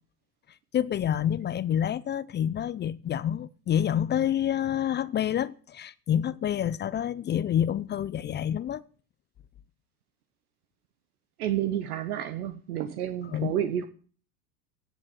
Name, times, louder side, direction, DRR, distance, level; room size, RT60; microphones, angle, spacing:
voice 1, 0.7-8.8 13.2-13.5, left 10 dB, 20° left, 0.6 m, -28 dB
voice 2, 11.4-13.9, right 11 dB, 70° right, 1.4 m, -30 dB
17.0 x 7.4 x 8.1 m
hypercardioid pair, 90°, 47 cm